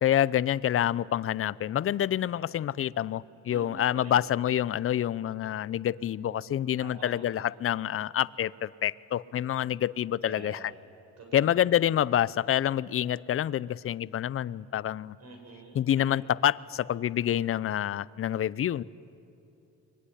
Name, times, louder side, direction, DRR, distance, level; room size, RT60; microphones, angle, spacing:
voice 1, 0.0-10.7 11.3-15.2 15.7-18.8, left 11 dB, 45° left, 20 dB, 0.6 m, -27 dB
voice 2, 3.5-4.2 6.8-7.1 10.2-10.6 11.2-11.6 15.2-15.9, right 3 dB, 55° right, 2 dB, 7.3 m, -46 dB
24.5 x 21.5 x 10.0 m, 2.8 s
cardioid pair, 90°, 30 cm